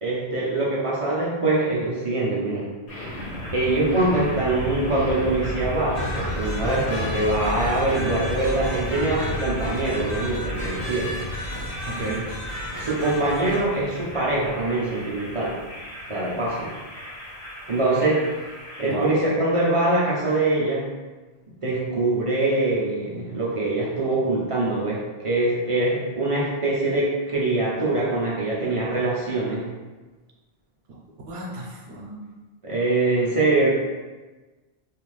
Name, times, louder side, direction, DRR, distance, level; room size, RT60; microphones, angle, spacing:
voice 1, 0.0-2.7 3.5-11.2 12.8-15.6 16.1-16.7 17.7-18.3 18.8-20.9 21.6-29.7 32.6-33.7, right 2 dB, 45° right, -7 dB, 0.4 m, -23 dB
sound 1, 2.9-18.9, equal, 90° left, 1.1 m, -33 dB
sound 2, 5.9-13.6, left 1 dB, 45° left, 0.9 m, -35 dB
voice 2, 11.9-12.2 18.8-19.1 31.3-32.4, right 2 dB, 75° right, -2 dB, 0.8 m, -33 dB
2.5 x 2.4 x 3.1 m, 1.3 s
omnidirectional pair, 1.1 m